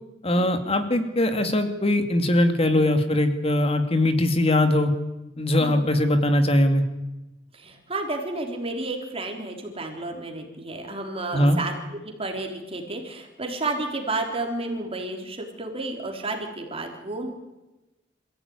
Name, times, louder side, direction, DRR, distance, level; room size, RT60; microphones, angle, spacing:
voice 1, 0.2-4.9 5.4-6.9 11.3-11.6, left 1 dB, 35° left, 7 dB, 2.6 m, -21 dB
voice 2, 5.6-5.9 7.5-11.7 12.0-17.3, right 2 dB, 30° right, 2 dB, 4.0 m, -31 dB
26.5 x 16.0 x 9.8 m, 1.0 s
head